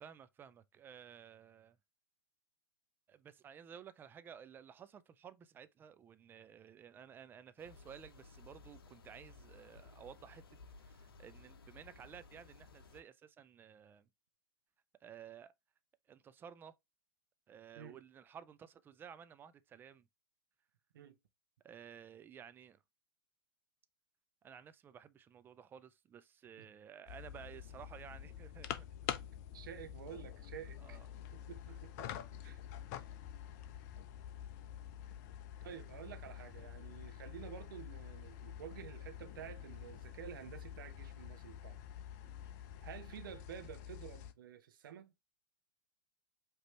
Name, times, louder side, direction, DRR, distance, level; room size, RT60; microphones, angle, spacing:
voice 1, 0.0-1.8 3.1-14.1 15.0-15.5 16.1-16.8 17.5-20.1 21.6-22.8 24.4-28.9 30.8-31.1 42.2-42.6, right 8 dB, 15° right, 0.4 m, -54 dB
sound 1, 7.6-13.0, left 3 dB, 70° left, 0.8 m, -58 dB
sound 2, 27.1-44.3, left 10 dB, 45° left, 0.6 m, -47 dB
voice 2, 29.2-31.0 31.3-32.6 35.6-41.8 42.8-45.1, right 9 dB, 60° right, 0.8 m, -51 dB
5.0 x 2.9 x 3.1 m
figure-of-eight pair, 110°, 12 cm